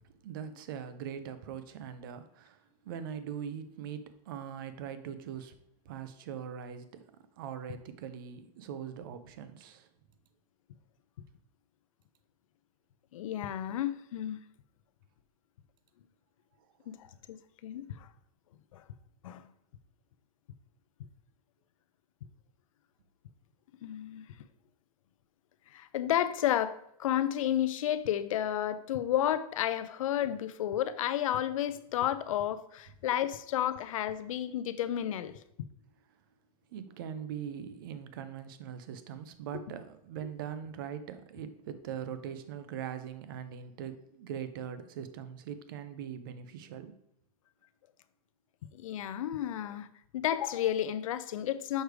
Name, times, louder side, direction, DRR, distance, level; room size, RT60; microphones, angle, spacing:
voice 1, 0.0-5.6 5.9-7.0 7.4-9.9 16.8-17.0 36.7-46.9, right 8 dB, 35° right, 0.4 m, -41 dB
voice 2, 13.1-14.4 16.9-18.1 18.7-18.8 19.2-19.4 23.8-24.3 25.7-35.4 48.7-49.9 50.1-51.8, left 11 dB, 55° left, 0.5 m, -32 dB
6.5 x 3.2 x 4.7 m
supercardioid pair, 180°, 20 cm